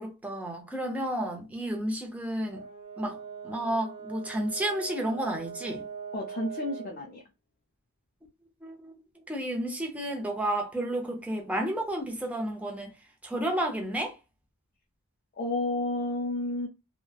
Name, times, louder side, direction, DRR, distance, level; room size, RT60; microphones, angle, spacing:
voice 1, 0.0-2.6 3.0-3.2 3.4-5.8 8.6-12.9 13.2-14.2, right 1 dB, 5° right, 0.6 m, -31 dB
Brass instrument, 2.5-7.0, right 6 dB, 55° right, 1.3 m, -41 dB
voice 2, 6.1-7.2 15.4-16.7, left 2 dB, 40° left, 0.5 m, -31 dB
3.0 x 2.1 x 2.3 m
head